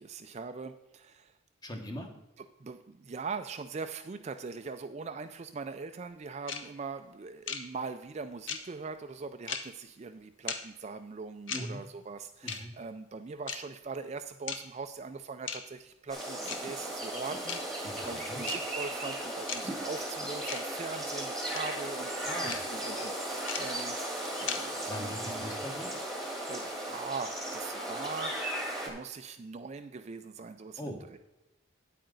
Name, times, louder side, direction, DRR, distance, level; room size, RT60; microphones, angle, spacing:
voice 1, 0.0-1.3 2.6-24.0 24.4-25.5 26.5-31.2, right 4 dB, 30° right, 8 dB, 0.3 m, -41 dB
voice 2, 1.6-2.1 11.5-11.8 12.4-12.7 17.8-18.5 22.2-22.6 24.9-25.9 30.8-31.0, equal, 20° left, 3 dB, 1.2 m, -40 dB
sound 1, 6.5-6.6 7.5-7.6 8.5-8.6 9.5-9.6 10.5-10.6 11.5-11.6 12.5-12.6 13.5-13.6 14.5-14.6 15.5-15.6 16.5-16.6 17.5-17.6 18.5-18.6 19.5-19.6 20.5-20.6 21.5-21.6 22.5-22.6 23.5-23.6 24.5-24.6, left 7 dB, 60° left, 0.9 m, -35 dB
sound 2, 16.1-28.9, right 1 dB, ahead, 1.5 m, -36 dB
9.3 x 8.7 x 3.9 m, 0.96 s
head